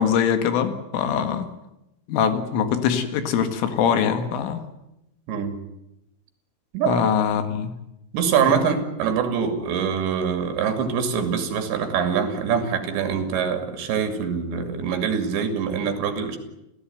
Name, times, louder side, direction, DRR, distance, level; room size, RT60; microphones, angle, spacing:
voice 1, 0.0-1.5 2.1-4.6 6.9-7.7 8.4-8.6, left 8 dB, 80° left, 9 dB, 4.4 m, -23 dB
voice 2, 8.1-16.4, right 7 dB, 65° right, 7 dB, 4.6 m, -24 dB
29.5 x 15.5 x 9.4 m, 0.88 s
omnidirectional pair, 5.7 m